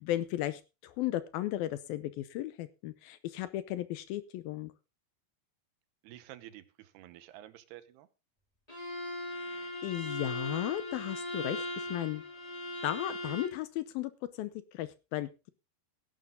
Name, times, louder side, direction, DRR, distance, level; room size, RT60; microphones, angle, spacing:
voice 1, 0.0-4.7 9.3-12.2 12.8-15.5, left 14 dB, 75° left, 14 dB, 2.4 m, -35 dB
voice 2, 6.0-8.1, right 13 dB, 80° right, 13 dB, 3.0 m, -50 dB
Bowed string instrument, 8.7-13.6, left 1 dB, 10° left, 3.6 m, -39 dB
14.5 x 11.5 x 3.7 m, 0.29 s
omnidirectional pair, 4.7 m